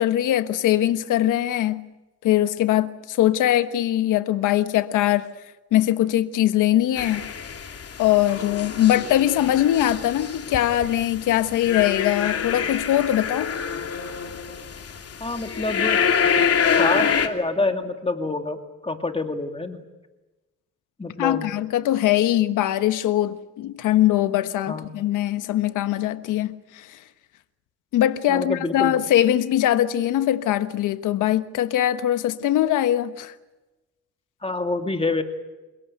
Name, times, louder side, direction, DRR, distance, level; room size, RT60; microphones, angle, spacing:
voice 1, 0.0-1.9 2.2-5.3 5.7-7.3 8.0-13.5 21.2-27.0 27.9-33.3, left 12 dB, 85° left, 1.4 m, -21 dB
sound 1, 7.0-17.3, left 7 dB, 50° left, 2.9 m, -26 dB
voice 2, 15.2-16.0 16.8-18.6 18.8-19.8 21.0-21.4 24.7-24.9 28.3-28.9 34.4-35.2, left 3 dB, 20° left, 2.4 m, -26 dB
29.0 x 17.5 x 9.3 m
cardioid pair, 90°, 30 cm